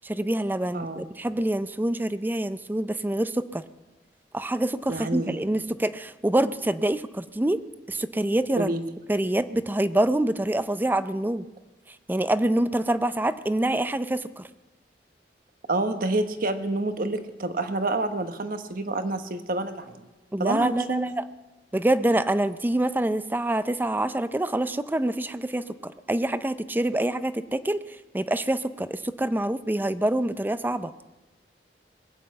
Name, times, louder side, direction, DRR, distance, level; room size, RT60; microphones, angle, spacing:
voice 1, 0.0-3.6 4.3-7.6 7.9-8.7 9.1-11.4 12.1-14.5 20.3-21.2 21.7-27.8 28.1-30.9, right 1 dB, 10° right, 13 dB, 0.5 m, -26 dB
voice 2, 4.9-5.4 8.6-8.8 15.7-20.0 20.4-21.1, right 2 dB, 55° right, 8 dB, 1.1 m, -28 dB
20.0 x 8.0 x 8.6 m, 1.1 s
head